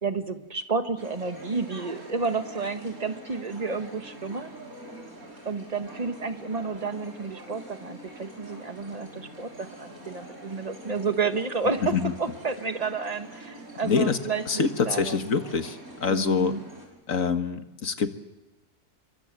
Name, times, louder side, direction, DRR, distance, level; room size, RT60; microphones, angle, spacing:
voice 1, 0.0-4.5 5.4-15.3 16.1-16.6, right 4 dB, 25° right, 8 dB, 1.6 m, -31 dB
sound 1, 1.0-16.9, right 1 dB, 65° right, 6.1 m, -45 dB
voice 2, 13.8-14.2 14.5-16.5 17.1-18.1, left 5 dB, 60° left, 8 dB, 1.9 m, -25 dB
27.5 x 24.0 x 7.6 m, 1.0 s
omnidirectional pair, 1.6 m